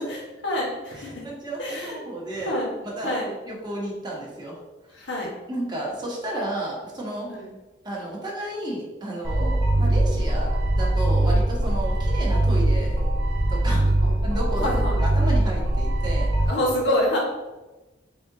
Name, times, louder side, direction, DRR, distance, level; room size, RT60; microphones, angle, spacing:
voice 1, 0.1-1.2 1.6-2.0 2.3-2.7 3.0-3.3 4.9-5.3 7.3-7.5 9.4-9.5 14.0-14.1 14.6-15.1 16.5-17.2, left 1 dB, 70° left, -3 dB, 1.2 m, -27 dB
voice 2, 1.2-2.5 3.0-4.6 5.5-7.3 7.8-10.5 10.8-13.0 13.5-13.9 14.2-14.7 15.0-16.3, right 1 dB, 25° right, -4 dB, 1.0 m, -32 dB
sound 1, 9.2-16.5, right 1 dB, 85° right, 0.7 m, -22 dB
3.8 x 3.4 x 2.7 m, 1.1 s
head